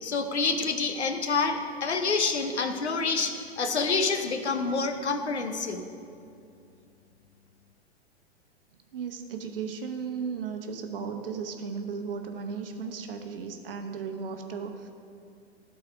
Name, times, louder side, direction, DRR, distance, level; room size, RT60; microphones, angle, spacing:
voice 1, 0.0-5.9, left 4 dB, 80° left, 6 dB, 0.9 m, -27 dB
voice 2, 8.9-14.9, right 6 dB, 55° right, 5 dB, 1.0 m, -35 dB
12.0 x 4.2 x 4.9 m, 2.4 s
figure-of-eight pair, 105°, 33 cm